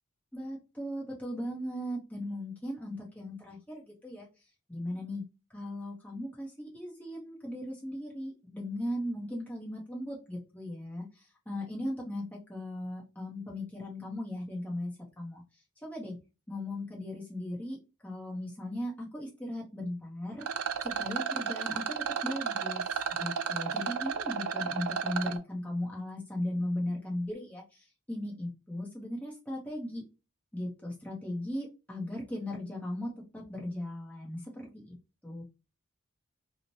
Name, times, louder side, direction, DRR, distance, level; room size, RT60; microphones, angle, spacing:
voice 1, 0.3-4.3 4.7-5.2 5.5-16.2 16.5-20.5 20.8-30.0 30.5-34.9 35.2-35.4, left 1 dB, 5° left, -4 dB, 0.6 m, -37 dB
Rattle, 20.4-25.4, right 7 dB, 80° right, 0.4 m, -33 dB
3.0 x 2.1 x 2.6 m, 0.29 s
head